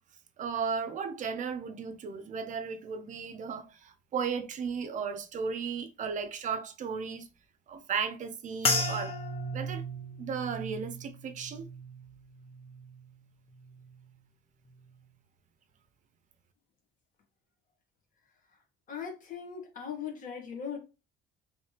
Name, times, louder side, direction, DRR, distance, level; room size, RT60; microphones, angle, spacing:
voice 1, 0.4-7.3 7.7-9.1 9.5-9.8 10.2-11.7, right 6 dB, 50° right, 0.5 m, -35 dB
sound 1, 8.6-13.2 13.5-14.1 14.7-15.0, left 1 dB, 35° left, 0.9 m, -35 dB
voice 2, 18.9-20.8, left 7 dB, 50° left, 1.3 m, -39 dB
3.2 x 3.1 x 2.8 m
cardioid pair, 110°, 17 cm